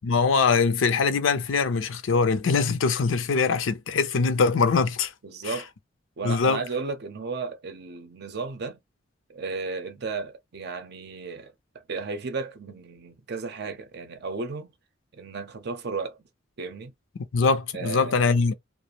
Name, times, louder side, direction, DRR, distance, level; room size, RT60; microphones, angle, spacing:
voice 1, 0.0-5.1 5.4-5.5 6.2-6.6 17.2-18.5, left 4 dB, 80° left, 0.5 m, -22 dB
voice 2, 5.2-5.7 6.2-8.8 9.3-11.5 11.9-14.7 15.1-16.2 16.6-16.9 17.7-18.3, right 4 dB, 60° right, 0.6 m, -34 dB
2.5 x 2.0 x 2.8 m
head